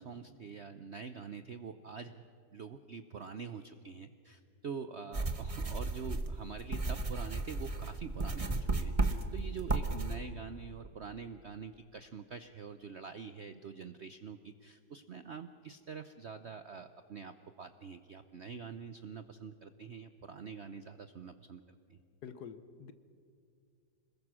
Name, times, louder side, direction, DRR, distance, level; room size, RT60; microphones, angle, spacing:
voice 1, 0.0-2.2 2.5-21.6 21.9-22.0, right 6 dB, 60° right, 10 dB, 0.7 m, -45 dB
sound 1, 5.1-10.2, right 3 dB, 25° right, 1.0 m, -34 dB
voice 2, 22.2-22.9, left 7 dB, 60° left, 12 dB, 1.4 m, -47 dB
26.5 x 21.0 x 6.2 m, 2.4 s
omnidirectional pair, 2.0 m